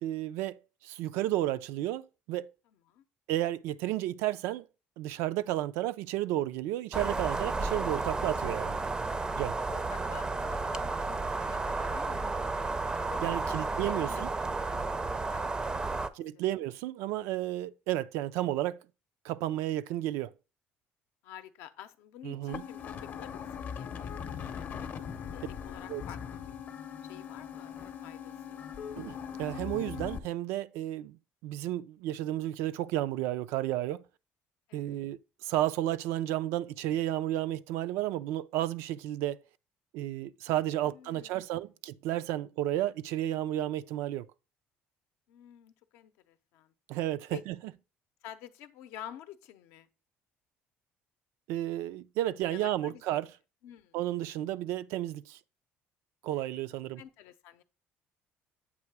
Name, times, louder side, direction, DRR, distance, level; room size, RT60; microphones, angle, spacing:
voice 1, 0.0-2.5 3.3-4.7 5.0-8.8 9.3-9.6 13.2-14.3 16.1-18.8 19.2-20.3 22.2-22.6 25.9-26.0 29.0-34.0 34.7-39.4 39.9-44.3 46.9-47.6 51.5-53.3 53.9-55.4 56.2-57.0, right 14 dB, 85° right, 0.3 m, -32 dB
sound 1, 6.9-16.1, right 3 dB, 20° right, 0.4 m, -32 dB
voice 2, 9.7-12.4 13.1-16.1 21.2-24.8 25.3-26.4 27.0-28.7 34.7-35.1 40.8-41.3 45.3-46.7 47.3-47.4 48.2-49.9 52.5-53.0 53.6-54.0 56.3-56.6 57.0-57.6, left 11 dB, 85° left, 0.6 m, -50 dB
sound 2, 22.5-30.2, left 7 dB, 45° left, 0.6 m, -40 dB
8.1 x 2.9 x 4.7 m
cardioid pair, 120°, 4 cm